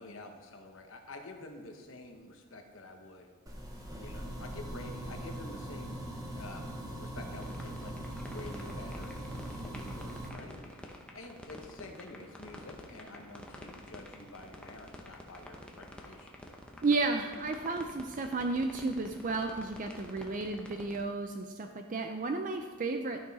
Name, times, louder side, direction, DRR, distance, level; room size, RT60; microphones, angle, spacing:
voice 1, 0.0-3.3 4.0-6.0 6.3-6.8 7.0-7.9 8.3-16.3, left 2 dB, 65° left, 4 dB, 1.1 m, -48 dB
sound 1, 3.5-10.3, right 1 dB, 15° right, 1.0 m, -41 dB
sound 2, 7.4-21.0, left 1 dB, 5° left, 0.8 m, -48 dB
voice 2, 16.8-23.2, right 3 dB, 35° right, 5 dB, 0.4 m, -33 dB
12.0 x 6.2 x 4.1 m, 1.5 s
head